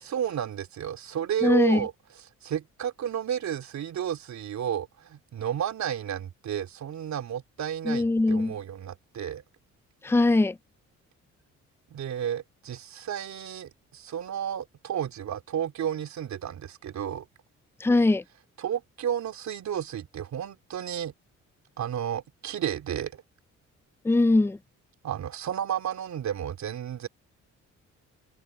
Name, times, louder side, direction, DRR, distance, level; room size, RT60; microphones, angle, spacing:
voice 1, 0.0-1.9 2.4-9.4 11.9-17.2 18.6-21.1 21.8-23.1 25.0-27.1, right 9 dB, 65° right, 3.5 m, -32 dB
voice 2, 1.4-1.9 7.9-8.6 10.0-10.6 17.8-18.2 24.0-24.6, left 2 dB, 10° left, 0.5 m, -21 dB
open air
cardioid pair, 90°, 30 cm